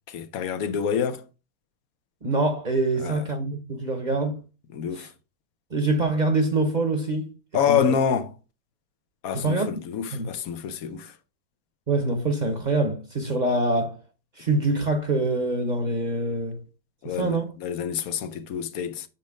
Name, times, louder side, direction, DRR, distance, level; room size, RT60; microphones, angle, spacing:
voice 1, 0.1-1.2 3.0-3.2 4.7-5.1 7.5-8.3 9.2-11.1 17.0-19.1, left 7 dB, 75° left, 1.1 m, -27 dB
voice 2, 2.2-4.4 4.9-5.1 5.7-7.3 7.7-8.0 9.3-9.8 10.1-10.3 11.9-14.0 14.4-16.6 17.0-17.5, right 2 dB, 35° right, 0.9 m, -25 dB
6.3 x 4.3 x 4.8 m
omnidirectional pair, 1.6 m